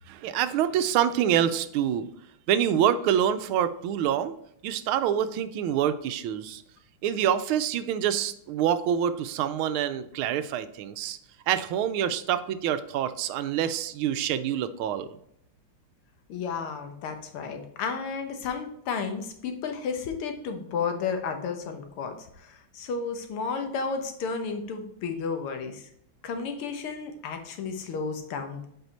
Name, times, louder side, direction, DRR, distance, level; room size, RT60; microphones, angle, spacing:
voice 1, 0.1-2.1 2.5-4.3 4.6-6.6 7.0-11.2 11.5-15.1, right 9 dB, 80° right, 12 dB, 1.4 m, -26 dB
voice 2, 16.3-25.9 26.2-28.7, left 5 dB, 85° left, 6 dB, 2.0 m, -32 dB
7.9 x 4.9 x 4.1 m, 0.71 s
omnidirectional pair, 2.3 m